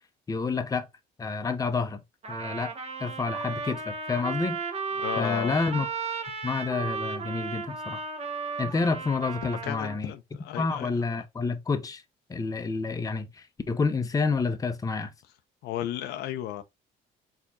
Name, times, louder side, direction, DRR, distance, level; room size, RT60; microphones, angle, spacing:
voice 1, 0.3-0.9 1.2-2.0 2.3-2.7 3.0-4.6 5.2-5.9 6.4-8.0 8.6-10.1 10.6-12.0 12.3-15.1, left 4 dB, 20° left, 0.7 m, -29 dB
Trumpet, 2.2-10.0, right 4 dB, 40° right, 1.3 m, -34 dB
voice 2, 5.0-5.5 9.4-11.0 15.6-16.6, left 12 dB, 75° left, 0.6 m, -34 dB
4.5 x 3.5 x 2.7 m
cardioid pair, 110°, 17 cm